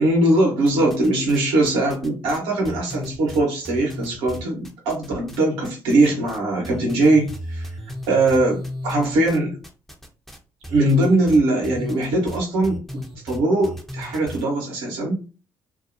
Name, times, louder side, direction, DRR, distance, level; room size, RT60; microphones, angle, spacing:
voice 1, 0.0-7.7 8.1-9.6 10.7-15.2, right 2 dB, 75° right, 1.0 m, -21 dB
sound 1, 0.7-1.4 1.6-5.4 5.6-6.4 6.6-14.4, equal, 5° left, 0.6 m, -35 dB
2.5 x 2.0 x 2.6 m
hypercardioid pair, 50°, 9 cm